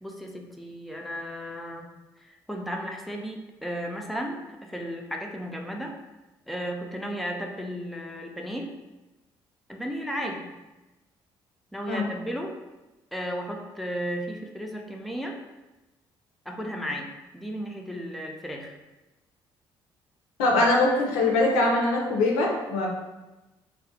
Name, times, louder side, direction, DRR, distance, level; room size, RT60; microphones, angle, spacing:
voice 1, 0.0-1.9 2.2-5.9 6.5-8.7 9.7-10.5 11.7-12.5 13.1-15.4 16.5-18.7, equal, ahead, 1 dB, 0.4 m, -34 dB
voice 2, 20.4-22.9, left 2 dB, 85° left, 0 dB, 0.5 m, -22 dB
2.3 x 2.1 x 2.7 m, 1.1 s
hypercardioid pair, 55°, 11 cm